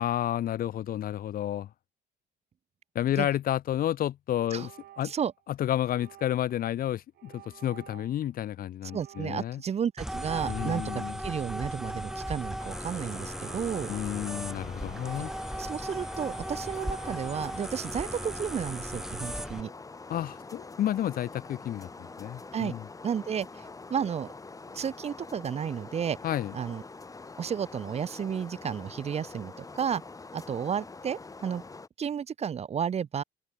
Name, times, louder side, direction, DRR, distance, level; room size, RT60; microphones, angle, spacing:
voice 1, 0.0-1.7 3.0-4.7 5.0-5.1 5.6-9.6 10.5-11.2 13.9-15.3 20.1-22.9 26.2-26.5, left 11 dB, 60° left, 1.8 m, -31 dB
sound 1, 4.4-5.4 5.8-6.6 7.1-8.2 8.8-9.7 10.2-11.4 11.8-12.6 13.1-14.2 14.8-15.7 16.3-17.5 17.9-18.4, right 14 dB, 70° right, 3.4 m, -52 dB
voice 2, 8.9-13.9 15.6-19.7 22.5-22.7 23.0-24.3 24.7-26.2 26.5-26.8 27.4-30.0 30.3-31.6 32.0-33.2, right 8 dB, 40° right, 1.0 m, -32 dB
sound 2, 10.0-19.6, equal, 5° right, 1.9 m, -37 dB
sound 3, 12.6-31.9, left 3 dB, 20° left, 6.9 m, -45 dB
cardioid pair, 110°, 17 cm